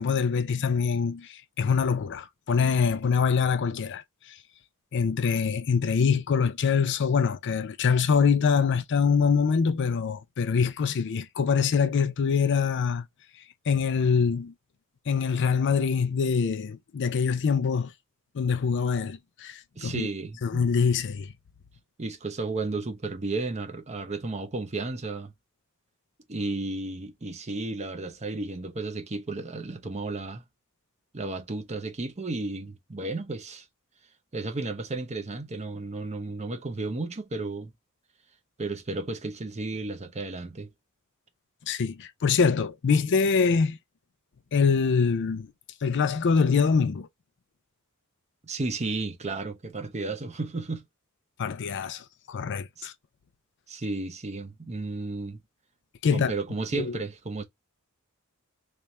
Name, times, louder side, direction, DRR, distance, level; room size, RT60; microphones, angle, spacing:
voice 1, 0.0-4.4 4.9-13.0 13.7-14.5 15.1-17.9 18.3-20.1 20.4-21.3 41.7-43.8 44.5-45.5 45.8-47.1 51.4-52.9 56.0-56.3 56.7-57.0, left 5 dB, 55° left, 0.4 m, -24 dB
voice 2, 19.8-20.7 22.0-25.3 26.3-30.4 31.1-33.6 34.3-37.7 38.6-40.7 48.4-50.8 52.8-52.9 53.7-55.4 56.1-57.4, right 3 dB, 30° right, 0.7 m, -33 dB
3.3 x 2.4 x 4.1 m
head